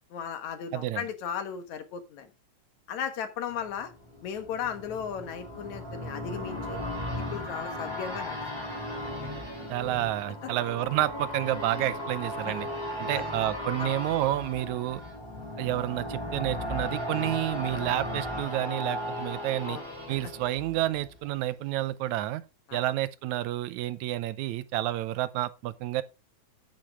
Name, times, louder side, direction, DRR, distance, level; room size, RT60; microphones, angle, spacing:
voice 1, 0.1-2.3 2.9-3.9 4.2-6.8 7.3-8.4 13.1-13.2 13.8-13.9 19.6-19.8 22.7-22.8, left 8 dB, 75° left, 2.7 m, -36 dB
voice 2, 0.7-1.1 9.7-12.7 13.0-15.0 15.6-19.8 20.1-22.4 22.7-26.0, right 15 dB, 80° right, 2.0 m, -30 dB
sound 1, 3.6-21.4 21.8-21.9, left 1 dB, 10° right, 3.7 m, -36 dB
9.6 x 9.0 x 3.5 m
omnidirectional pair, 3.3 m